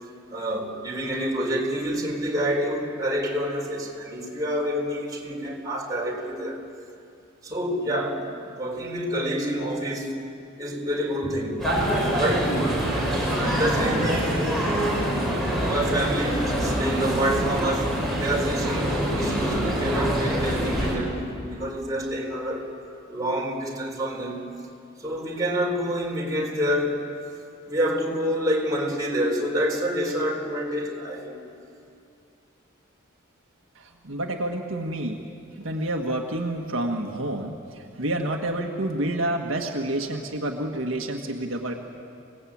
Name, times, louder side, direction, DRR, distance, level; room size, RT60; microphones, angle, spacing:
voice 1, 0.3-6.6 7.4-8.3 8.6-10.1 10.6-11.6 12.1-12.6 12.9-14.4 15.6-22.7 23.1-24.4 25.0-27.0 27.7-31.4, equal, 20° right, 4.4 m, -27 dB
sound 1, 11.6-20.9, right 1 dB, ahead, 6.9 m, -25 dB
voice 2, 33.8-35.2 35.6-41.8, right 1 dB, 70° right, 1.7 m, -29 dB
28.0 x 19.0 x 8.7 m
head